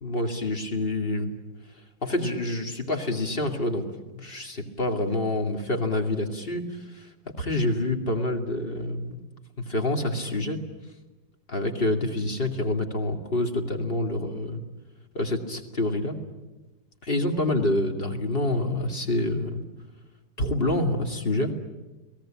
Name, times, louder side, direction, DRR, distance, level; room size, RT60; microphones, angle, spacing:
voice 1, 0.0-1.3 2.0-3.9 4.1-7.1 7.4-9.3 9.6-10.6 11.5-14.6 15.1-16.2 17.0-19.6 20.4-21.5, left 1 dB, 30° left, 4 dB, 2.7 m, -27 dB
30.0 x 19.5 x 9.0 m, 1.1 s
omnidirectional pair, 2.0 m